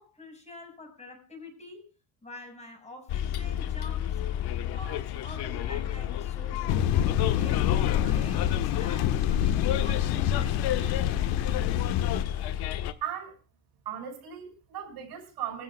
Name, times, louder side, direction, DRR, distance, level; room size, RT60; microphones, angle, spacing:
voice 1, 0.0-1.8 2.2-4.2 4.7-11.8, left 2 dB, 15° left, 5.6 m, -47 dB
Bus, 3.1-12.9, left 11 dB, 65° left, 1.3 m, -32 dB
sound 1, 6.7-12.2, left 10 dB, 80° left, 1.5 m, -26 dB
voice 2, 13.0-13.4 13.8-15.6, right 9 dB, 60° right, 6.0 m, -37 dB
24.5 x 15.0 x 2.4 m
cardioid pair, 115°, 42 cm